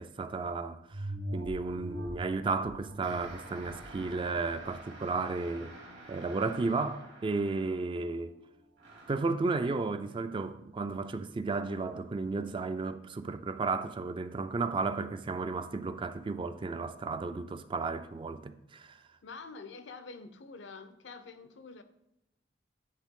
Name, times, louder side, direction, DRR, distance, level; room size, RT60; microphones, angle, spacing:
voice 1, 0.0-5.7 6.1-8.4 9.1-19.0, right 3 dB, 30° right, 0.3 m, -33 dB
sound 1, 0.9-5.8 6.3-6.4, equal, 90° right, 1.2 m, -43 dB
sound 2, 3.0-8.1 8.8-9.3, right 2 dB, 70° right, 1.8 m, -49 dB
voice 2, 19.2-21.8, left 4 dB, 75° left, 0.6 m, -47 dB
9.7 x 3.7 x 3.6 m
head